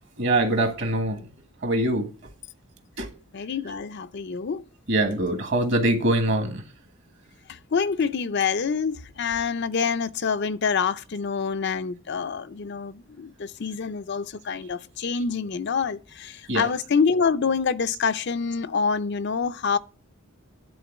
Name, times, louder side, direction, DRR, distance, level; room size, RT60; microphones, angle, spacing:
voice 1, 0.2-1.2 1.6-2.1 3.0-3.1 4.9-6.6 16.5-16.7, right 1 dB, 55° right, 1.5 m, -23 dB
voice 2, 3.3-4.6 7.7-19.8, left 5 dB, 50° left, 0.5 m, -26 dB
10.5 x 3.8 x 7.1 m
head